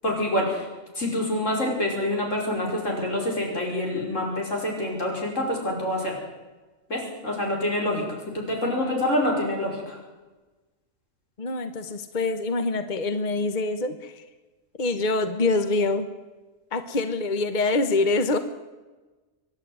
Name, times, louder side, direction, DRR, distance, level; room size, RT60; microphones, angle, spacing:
voice 1, 0.0-0.7 1.0-6.1 6.9-10.0, left 1 dB, 85° left, -1 dB, 5.7 m, -26 dB
voice 2, 8.6-9.0 11.4-14.2 14.8-16.1 16.7-18.4, left 3 dB, 40° left, 9 dB, 1.2 m, -25 dB
25.0 x 11.5 x 9.4 m, 1.2 s
omnidirectional pair, 1.3 m